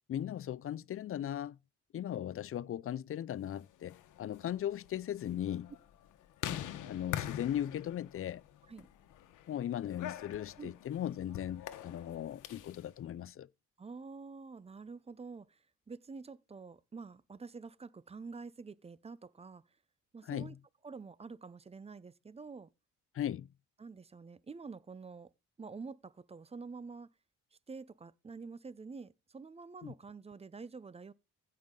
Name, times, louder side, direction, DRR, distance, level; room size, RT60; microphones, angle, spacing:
voice 1, 0.1-1.6 1.9-5.7 6.5-8.4 9.5-13.5 20.3-20.6 23.1-23.5 29.8-29.9, left 11 dB, 45° left, 0.5 m, -38 dB
sound 1, 3.7-12.8, left 11 dB, 85° left, 1.1 m, -45 dB
voice 2, 13.8-15.6 15.9-19.6 20.1-20.6 20.8-22.7 23.8-25.3 25.6-27.1 27.7-31.1, right 4 dB, 20° right, 0.6 m, -47 dB
15.5 x 5.6 x 3.8 m
cardioid pair, 90°, 30 cm